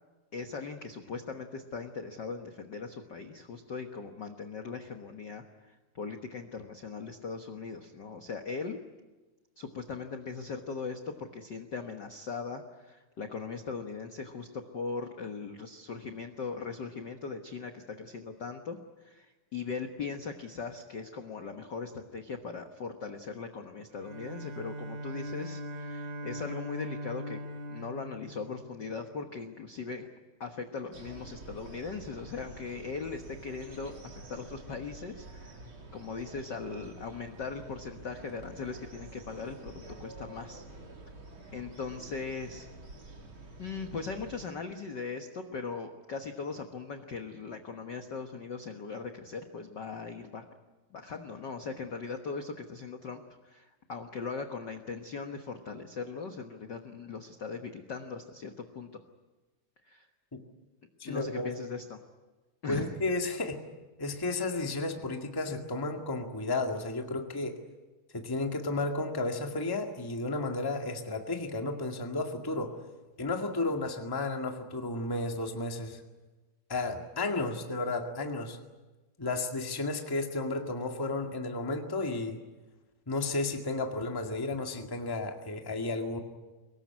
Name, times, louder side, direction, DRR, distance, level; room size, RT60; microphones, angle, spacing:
voice 1, 0.3-8.8 9.6-27.4 27.7-30.1 30.4-35.6 35.9-40.6 41.5-42.7 43.6-50.5 50.9-59.0 59.8-60.1 61.0-62.0 62.6-63.0, left 4 dB, 55° left, 5 dB, 1.2 m, -39 dB
Bowed string instrument, 23.9-29.1, equal, 65° right, 3.8 m, -40 dB
sound 1, 30.9-44.4, right 2 dB, 40° right, 3.7 m, -48 dB
voice 2, 61.0-61.5 62.7-63.6 64.0-67.6 68.1-72.8 73.2-76.0 76.7-78.6 79.2-82.4 83.1-86.2, left 2 dB, 10° left, 3 dB, 1.1 m, -33 dB
23.5 x 20.0 x 9.6 m, 1.2 s
omnidirectional pair, 3.9 m